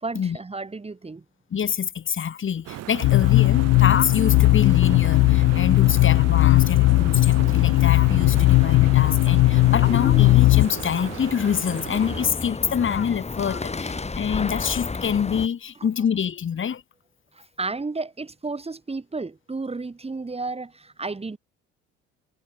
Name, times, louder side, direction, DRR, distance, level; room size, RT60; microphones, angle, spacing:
voice 1, 0.0-1.2 17.3-21.4, right 3 dB, 20° right, 2.8 m, -32 dB
voice 2, 1.5-16.8, left 7 dB, 40° left, 3.1 m, -26 dB
sound 1, 2.7-12.3, right 15 dB, 50° right, 1.1 m, -37 dB
sound 2, 3.0-10.7, left 20 dB, 55° left, 0.7 m, -17 dB
sound 3, 4.1-15.5, left 3 dB, 20° left, 3.4 m, -35 dB
hypercardioid pair, 60°, 32 cm